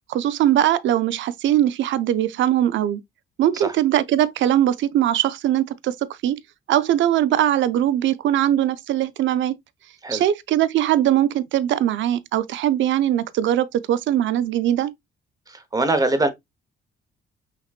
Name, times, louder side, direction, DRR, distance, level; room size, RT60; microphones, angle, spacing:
voice 1, 0.1-3.0 3.4-6.4 6.7-9.6 10.1-14.9, right 12 dB, 70° right, 0.5 m, -21 dB
voice 2, 15.5-16.3, right 2 dB, 20° right, 1.0 m, -22 dB
5.9 x 2.9 x 2.4 m
cardioid pair, 90°, 20 cm